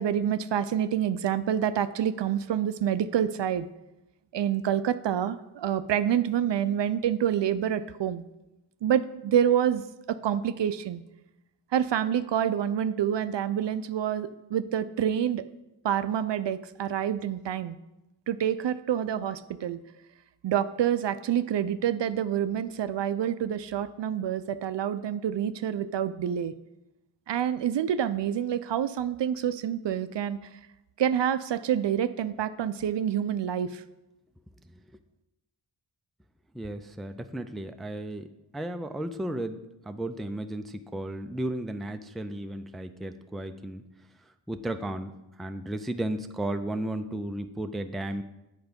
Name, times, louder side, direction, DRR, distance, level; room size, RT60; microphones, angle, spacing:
voice 1, 0.0-3.7 4.3-8.2 8.8-9.8 10.1-11.0 11.7-15.4 15.8-17.8 18.3-19.8 20.4-26.5 27.3-30.4 31.0-33.8, right 9 dB, 65° right, 13 dB, 0.5 m, -27 dB
voice 2, 36.5-38.3 38.5-43.9 44.5-45.1 45.4-48.2, right 1 dB, ahead, 8 dB, 0.4 m, -34 dB
8.0 x 4.6 x 5.2 m, 0.95 s
cardioid pair, 55°, 48 cm